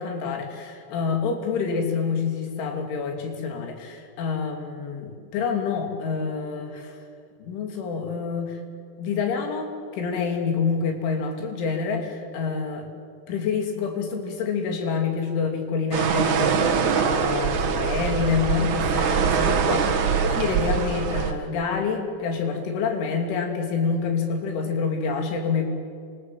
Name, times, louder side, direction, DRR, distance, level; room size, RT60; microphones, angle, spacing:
voice 1, 0.0-7.0 7.4-8.6 9.0-12.9 13.3-25.7, left 5 dB, 75° left, 3 dB, 5.4 m, -27 dB
sound 1, 15.9-21.3, right 6 dB, 55° right, 2.4 m, -23 dB
29.0 x 27.0 x 7.7 m, 2.2 s
omnidirectional pair, 5.5 m